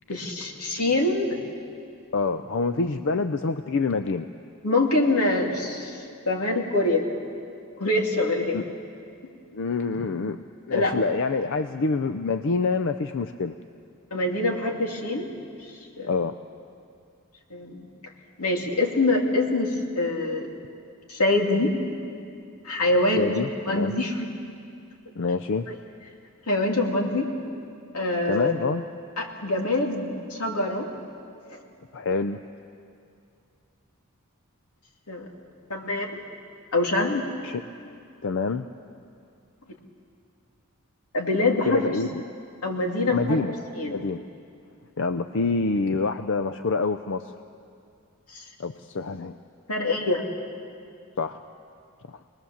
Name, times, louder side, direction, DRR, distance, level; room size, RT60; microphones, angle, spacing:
voice 1, 0.1-1.4 4.6-7.1 7.8-8.6 10.7-10.9 14.1-15.4 16.0-16.1 17.5-17.9 18.4-20.5 21.1-21.7 22.6-23.3 23.7-24.3 25.7-25.8 26.5-27.3 27.9-28.5 29.2-30.9 35.1-35.3 35.7-36.1 36.7-37.3 41.1-41.8 42.6-43.2 43.8-44.0 48.3-48.4 49.7-50.2, left 2 dB, 85° left, 1 dB, 2.7 m, -24 dB
voice 2, 2.1-4.3 8.5-8.6 9.5-13.5 16.1-16.4 23.1-23.9 25.2-25.7 28.3-28.8 31.9-32.4 37.4-37.6 38.2-38.7 41.6-42.2 43.1-43.6 43.8-44.2 45.0-47.4 48.6-49.3 51.2-51.4 52.1-52.2, left 4 dB, 60° left, 10 dB, 0.5 m, -26 dB
24.5 x 20.5 x 7.2 m, 2.4 s
head